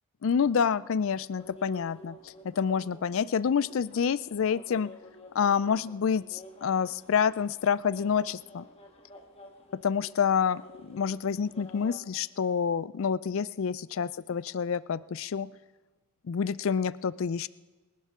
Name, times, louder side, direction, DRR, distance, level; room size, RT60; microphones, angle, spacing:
voice 1, 0.2-4.9 5.3-8.6 9.7-15.5 16.2-17.5, left 6 dB, 65° left, 18 dB, 0.4 m, -28 dB
sound 1, 1.4-12.0, left 1 dB, 25° left, 1.6 m, -51 dB
27.5 x 11.5 x 3.7 m, 1.3 s
head